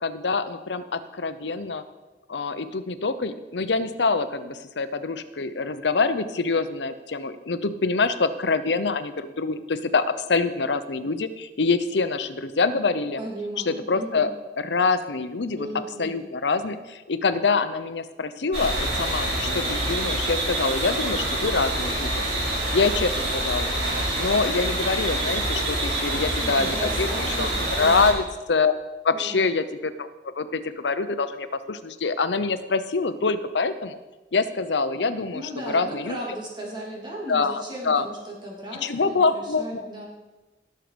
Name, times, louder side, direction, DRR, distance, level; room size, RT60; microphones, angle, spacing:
voice 1, 0.0-1.8 2.3-13.2 13.7-14.3 14.6-15.7 16.0-23.7 24.1-28.7 29.0-34.0 34.3-35.4 35.7-36.2 37.3-38.1 38.8-39.8, left 4 dB, 75° left, 12 dB, 0.8 m, -25 dB
voice 2, 13.2-14.3 15.6-16.2 22.9-23.1 26.4-28.1 29.1-29.5 35.3-40.1, right 1 dB, 25° right, -3 dB, 3.2 m, -36 dB
sound 1, 18.5-28.1, right 1 dB, 75° right, 4.3 m, -26 dB
sound 2, 23.9-27.3 27.8-27.9, equal, 5° left, 4.6 m, -45 dB
17.5 x 6.7 x 5.1 m, 1.1 s
head